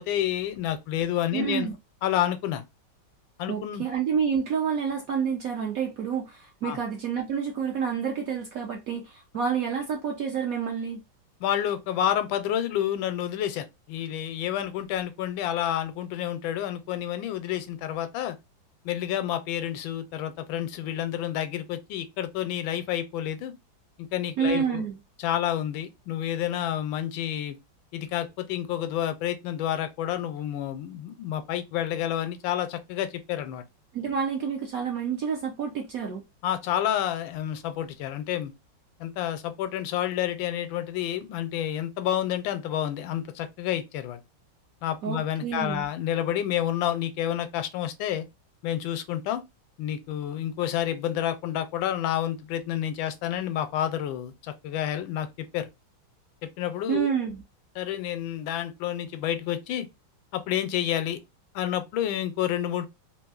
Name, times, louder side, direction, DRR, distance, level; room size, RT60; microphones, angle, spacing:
voice 1, 0.0-1.7 2.0-2.7 3.4-3.8 6.6-6.8 11.4-18.4 18.8-23.5 24.0-24.8 25.2-27.6 27.9-33.6 36.4-38.5 39.0-44.2 44.8-48.2 48.6-49.4 49.8-55.7 56.4-57.1 57.8-59.9 60.3-61.2 61.5-62.9, left 11 dB, 85° left, 1.3 m, -29 dB
voice 2, 1.3-1.7 3.5-11.0 24.4-25.0 33.9-36.2 45.0-45.9 56.9-57.4, right 7 dB, 70° right, 0.8 m, -29 dB
3.3 x 2.6 x 2.3 m
omnidirectional pair, 2.1 m